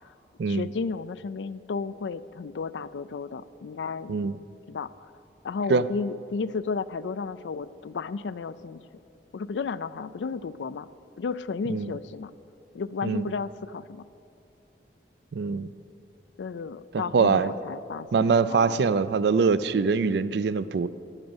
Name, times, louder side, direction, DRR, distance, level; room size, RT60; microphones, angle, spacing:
voice 1, 0.5-4.1 4.7-5.1 5.4-8.8 9.3-10.9 11.2-12.3 12.7-14.0 16.4-18.9, left 5 dB, 85° left, 15 dB, 0.4 m, -33 dB
voice 2, 15.3-15.7 16.9-17.5 18.1-20.9, right 5 dB, 70° right, 15 dB, 0.4 m, -23 dB
11.5 x 8.9 x 7.9 m, 2.7 s
head